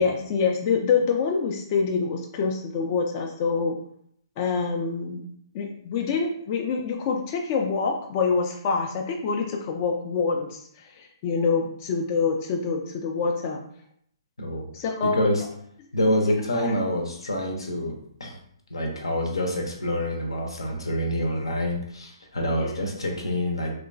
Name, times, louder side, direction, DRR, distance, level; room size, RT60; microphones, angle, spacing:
voice 1, 0.0-3.8 4.4-5.3 5.5-13.6 14.7-15.3 16.2-16.8 22.6-22.7, left 5 dB, 35° left, 2 dB, 0.3 m, -26 dB
voice 2, 15.1-15.4 15.9-17.9 18.2-18.4 18.7-23.7, left 1 dB, 80° left, 2 dB, 0.7 m, -26 dB
2.9 x 2.2 x 2.6 m, 0.67 s
figure-of-eight pair, 130°, 3 cm